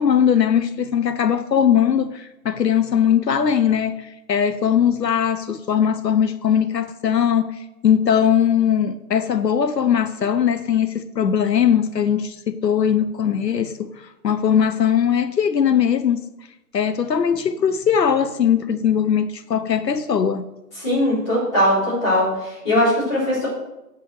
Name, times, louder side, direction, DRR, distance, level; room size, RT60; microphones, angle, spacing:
voice 1, 0.0-13.9 14.2-16.2 16.7-20.5, left 8 dB, 90° left, 0.9 m, -20 dB
voice 2, 20.8-23.5, left 1 dB, 20° left, 3.9 m, -20 dB
8.6 x 5.7 x 7.7 m
hypercardioid pair, 170°, 48 cm